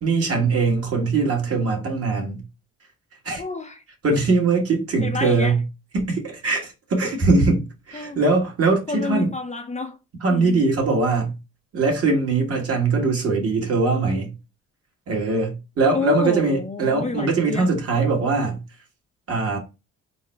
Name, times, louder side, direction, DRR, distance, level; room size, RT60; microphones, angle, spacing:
voice 1, 0.0-2.4 3.2-3.4 4.0-5.6 5.9-9.3 10.2-11.4 11.7-14.3 15.1-18.6 19.3-19.6, right 3 dB, 50° right, 1.6 m, -21 dB
voice 2, 3.4-3.8 5.0-5.5 7.9-8.2 8.9-10.0 10.3-10.6 15.9-17.7, left 4 dB, 25° left, 0.5 m, -29 dB
3.9 x 2.0 x 4.4 m
cardioid pair, 90°, 30 cm